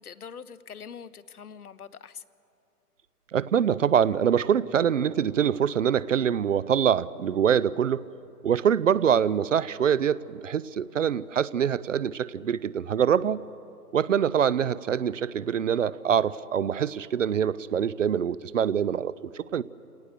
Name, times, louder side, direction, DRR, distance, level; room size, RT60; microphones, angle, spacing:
voice 1, 0.0-2.2, left 7 dB, 70° left, 15 dB, 1.0 m, -43 dB
voice 2, 3.3-8.0 8.4-13.4 13.9-19.6, right 8 dB, 55° right, 20 dB, 0.6 m, -24 dB
28.5 x 18.5 x 6.7 m, 2.9 s
figure-of-eight pair, 135°, 47 cm